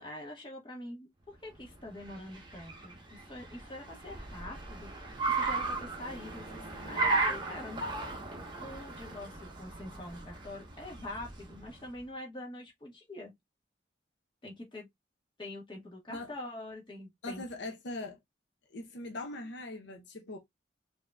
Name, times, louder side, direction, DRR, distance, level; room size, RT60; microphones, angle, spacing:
voice 1, 0.0-7.8 8.6-13.3 14.4-14.9 15.4-17.4, left 1 dB, 25° left, 1.4 m, -45 dB
Car, 1.6-11.9, right 3 dB, 25° right, 1.0 m, -36 dB
voice 2, 17.2-18.2 18.7-20.4, left 2 dB, 65° left, 0.7 m, -41 dB
5.0 x 2.9 x 2.2 m
head